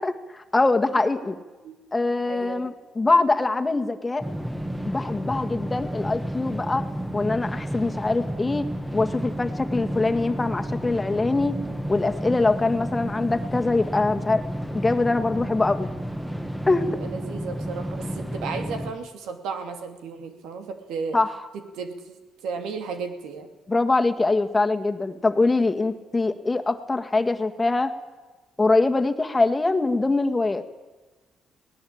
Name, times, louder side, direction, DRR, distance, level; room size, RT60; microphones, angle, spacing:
voice 1, 0.0-1.4 1.9-4.2 4.9-11.6 11.9-14.4 14.7-15.9 16.7-17.0 21.1-21.4 23.7-27.9 28.6-30.6, left 3 dB, 20° left, 7 dB, 1.9 m, -23 dB
voice 2, 2.3-2.7 16.9-21.2 21.5-22.2 22.4-23.5, right 5 dB, 90° right, 7 dB, 2.6 m, -34 dB
sound 1, 4.2-18.9, equal, 5° right, 1.5 m, -31 dB
20.0 x 18.5 x 8.8 m, 1.2 s
cardioid pair, 90°, 0 cm